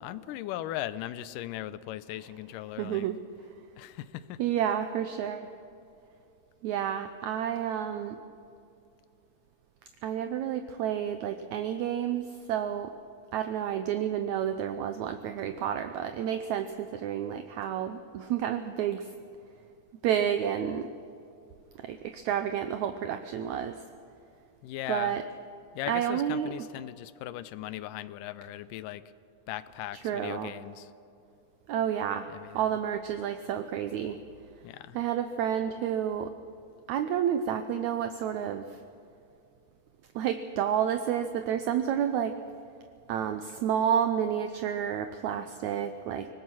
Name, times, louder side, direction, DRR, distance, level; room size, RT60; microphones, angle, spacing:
voice 1, 0.0-3.1 3.8-4.4 24.6-25.2 25.7-29.0 29.5-30.9 32.3-32.7 34.6-35.0, left 13 dB, 85° left, 15 dB, 2.3 m, -38 dB
voice 2, 2.8-3.2 4.4-5.5 6.6-8.2 10.0-12.9 13.3-19.1 20.0-20.9 21.8-23.8 24.9-25.2 25.9-26.5 30.0-30.5 31.7-32.3 32.5-34.2 34.9-36.3 36.9-38.8 40.2-42.4 43.1-46.3, right 9 dB, 75° right, 8 dB, 1.9 m, -30 dB
24.0 x 19.5 x 6.2 m, 2.6 s
omnidirectional pair, 3.8 m